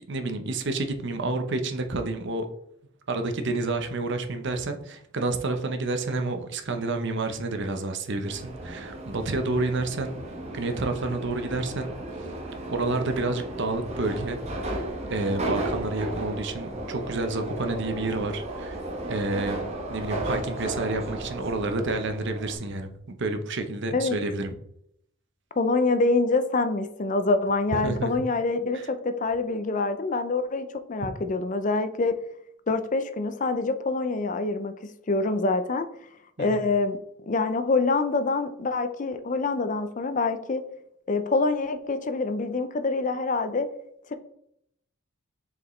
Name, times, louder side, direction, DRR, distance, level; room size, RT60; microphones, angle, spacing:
voice 1, 0.1-2.5 3.1-10.1 10.5-11.9 12.2-12.3 12.7-14.4 14.8-18.8 19.1-19.6 19.9-24.5 27.8-28.1 28.7-28.8 36.4-36.6, right 2 dB, 55° right, 7 dB, 0.8 m, -29 dB
Subway metro underground, 8.3-22.5, right 1 dB, 30° right, 1.0 m, -34 dB
voice 2, 25.6-32.1 32.7-35.9 36.4-37.0 37.2-40.6 41.1-43.7, left 3 dB, 35° left, 10 dB, 0.4 m, -26 dB
6.7 x 4.9 x 3.2 m, 0.74 s
head